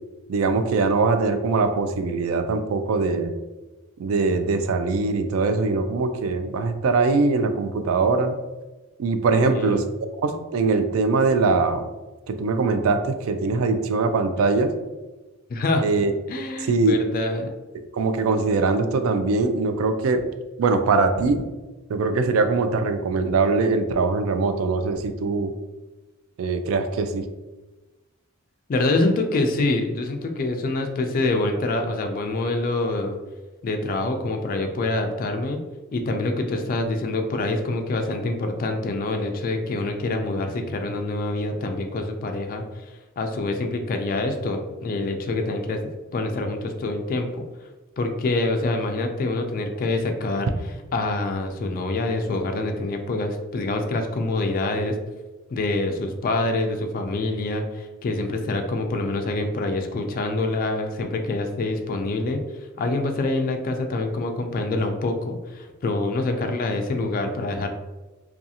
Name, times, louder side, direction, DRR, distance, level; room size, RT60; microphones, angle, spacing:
voice 1, 0.3-3.3 4.0-8.4 9.0-9.8 10.2-11.9 12.3-14.7 15.8-16.1 16.7-17.0 17.9-20.2 20.6-21.4 21.9-25.5 26.4-27.2, right 3 dB, 70° right, 9 dB, 0.3 m, -22 dB
voice 2, 9.3-9.9 15.5-15.8 16.3-17.5 28.7-33.2 33.6-35.6 35.9-45.8 46.1-47.4 48.0-50.5 50.9-54.9 55.5-67.7, left 2 dB, 45° left, 4 dB, 0.3 m, -26 dB
2.5 x 2.3 x 2.7 m, 1.1 s
head